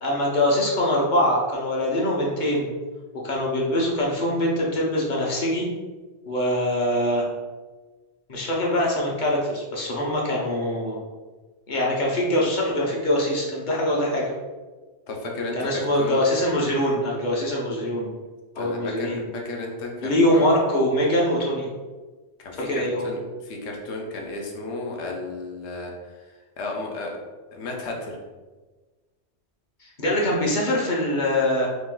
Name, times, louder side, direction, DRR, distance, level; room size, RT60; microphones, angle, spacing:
voice 1, 0.0-2.7 3.2-5.7 6.3-7.3 8.3-11.0 11.7-14.2 15.6-18.1 18.6-19.3 20.0-21.7 22.7-23.1 30.0-31.7, left 1 dB, 50° left, -3 dB, 0.9 m, -23 dB
voice 2, 15.1-16.2 18.6-20.5 22.4-25.9 26.6-27.1 27.5-28.2, left 2 dB, 80° left, 0 dB, 1.0 m, -33 dB
2.9 x 2.5 x 3.7 m, 1.3 s
omnidirectional pair, 1.1 m